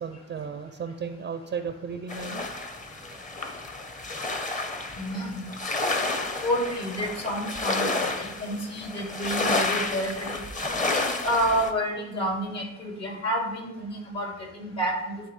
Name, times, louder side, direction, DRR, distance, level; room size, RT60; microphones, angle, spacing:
voice 1, 0.0-2.5 3.1-3.2, right 6 dB, 35° right, 8 dB, 0.5 m, -35 dB
sound 1, 2.1-11.7, left 2 dB, 25° left, 0.9 m, -30 dB
voice 2, 5.0-5.5 6.4-10.4 10.9-15.1, equal, 60° left, 0 dB, 2.3 m, -29 dB
11.0 x 3.7 x 3.2 m, 0.97 s
cardioid pair, 90°, 30 cm